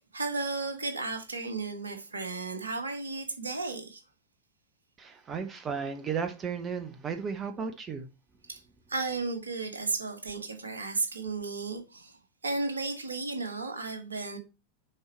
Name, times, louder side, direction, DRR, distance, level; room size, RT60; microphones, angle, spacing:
voice 1, 0.0-4.0 8.5-8.6 8.9-14.4, right 3 dB, 75° right, 1.4 m, -34 dB
voice 2, 5.0-8.1, right 6 dB, 25° right, 0.8 m, -34 dB
6.5 x 4.6 x 4.3 m
figure-of-eight pair, 90°, 0 cm